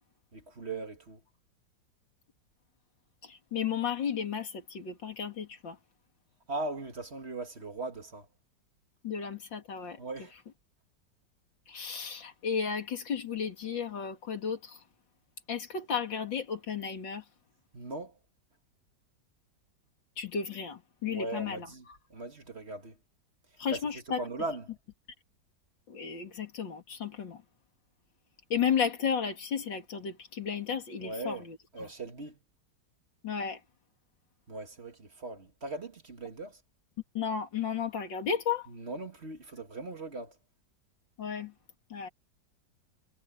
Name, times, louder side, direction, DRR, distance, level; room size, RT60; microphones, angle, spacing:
voice 1, 0.3-1.2 6.5-8.3 10.0-10.3 17.7-18.2 21.1-23.0 23.7-24.7 31.0-31.5 31.7-32.4 34.5-36.6 38.7-40.4, right 2 dB, 35° right, 2.1 m, -39 dB
voice 2, 3.2-5.8 9.0-10.0 11.7-14.8 15.5-17.2 20.2-21.7 23.6-24.2 25.9-27.4 28.5-31.6 33.2-33.6 37.1-38.7 41.2-41.5 41.9-42.1, left 7 dB, 85° left, 3.1 m, -33 dB
omnidirectional pair, 2.0 m